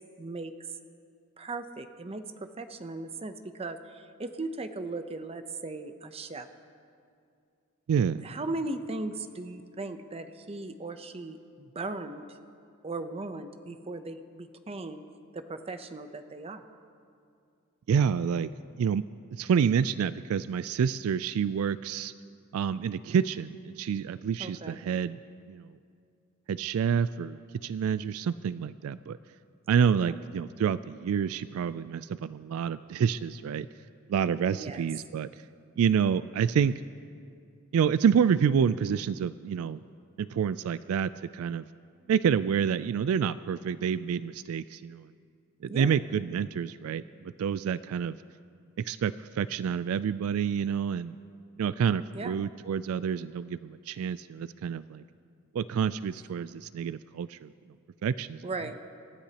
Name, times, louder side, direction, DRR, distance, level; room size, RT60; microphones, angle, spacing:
voice 1, 0.2-0.5 1.4-6.5 8.0-12.2 12.8-15.0 15.3-16.6 24.4-24.8 30.0-30.2 34.4-34.8 45.7-46.0 52.1-52.4 58.4-58.8, right 2 dB, 30° right, 8 dB, 0.7 m, -38 dB
voice 2, 7.9-8.3 17.9-18.5 18.8-19.0 19.3-22.1 22.5-25.2 25.5-25.7 26.5-29.2 29.7-33.7 34.1-35.3 35.8-36.8 37.7-39.8 40.2-41.6 42.1-45.1 45.6-47.0 47.4-48.2 48.8-51.2 51.6-55.0 55.5-57.5 58.0-58.4, right 7 dB, 70° right, 15 dB, 0.3 m, -28 dB
27.0 x 13.0 x 2.9 m, 2.4 s
head